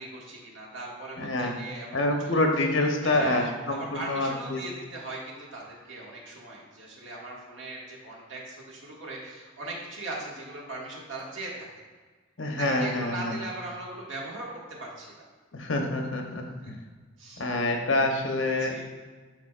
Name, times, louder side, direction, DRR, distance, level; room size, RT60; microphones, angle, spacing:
voice 1, 0.0-2.4 3.0-11.7 12.5-14.5 14.8-15.1 16.6-16.7 17.2-17.4 18.6-18.8, right 2 dB, 75° right, -4 dB, 1.8 m, -39 dB
voice 2, 1.2-1.5 1.9-4.6 12.4-13.4 15.5-16.4 17.4-18.7, left 2 dB, 70° left, 3 dB, 1.0 m, -26 dB
11.0 x 4.8 x 2.5 m, 1.4 s
head